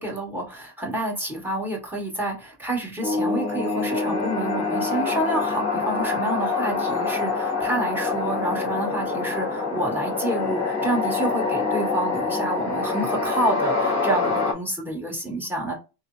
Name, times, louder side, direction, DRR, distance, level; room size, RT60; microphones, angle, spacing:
voice 1, 0.0-15.7, right 1 dB, 5° right, 0 dB, 1.1 m, -28 dB
sound 1, 3.0-14.5, left 4 dB, 35° left, 0.8 m, -25 dB
3.2 x 2.0 x 2.4 m, 0.29 s
supercardioid pair, 95°, 47 cm